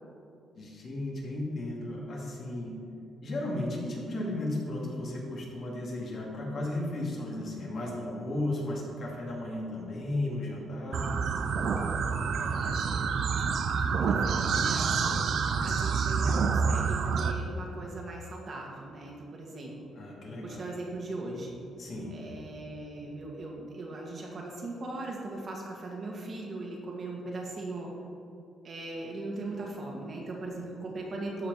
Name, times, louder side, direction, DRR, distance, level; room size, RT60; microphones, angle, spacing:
voice 1, 0.5-2.7 3.2-11.1 20.0-20.6 21.8-22.1, left 1 dB, 55° left, -3 dB, 2.5 m, -34 dB
sound 1, 10.9-17.3, right 5 dB, 60° right, 0.6 m, -28 dB
voice 2, 12.4-12.8 13.9-14.9 15.6-19.9 20.4-21.6 22.1-27.9 28.6-31.5, right 2 dB, 45° right, -1 dB, 2.0 m, -39 dB
13.5 x 5.1 x 4.8 m, 2.6 s
cardioid pair, 90°, 0 cm